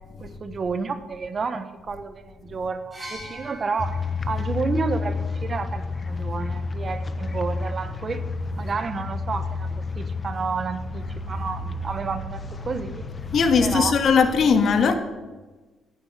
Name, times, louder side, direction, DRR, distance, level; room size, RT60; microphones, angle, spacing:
voice 1, 0.2-4.0 4.3-8.2 8.6-9.7 9.9-13.1 13.6-14.0, right 4 dB, 40° right, 1.3 m, -30 dB
sound 1, 2.9-6.7 7.8-7.9, equal, 15° right, 5.5 m, -45 dB
sound 2, 3.8-13.8, left 3 dB, 30° left, 1.2 m, -30 dB
voice 2, 13.3-14.9, left 5 dB, 60° left, 1.7 m, -19 dB
17.0 x 9.9 x 6.8 m
cardioid pair, 90°, 0 cm